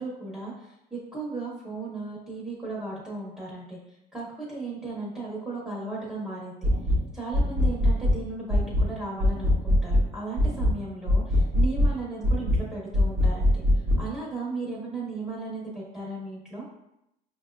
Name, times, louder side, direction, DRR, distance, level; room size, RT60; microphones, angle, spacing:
voice 1, 0.0-3.8 4.1-6.7 7.1-13.6 14.0-16.7, right 3 dB, 5° right, -6 dB, 0.9 m, -36 dB
sound 1, 6.6-7.0 7.3-8.2 8.5-8.9 9.2-10.1 10.4-10.8 11.1-11.9 12.2-12.6 12.9-14.0, left 1 dB, 50° right, 0.7 m, -22 dB
5.1 x 2.3 x 2.3 m, 0.82 s
cardioid pair, 110°, 17 cm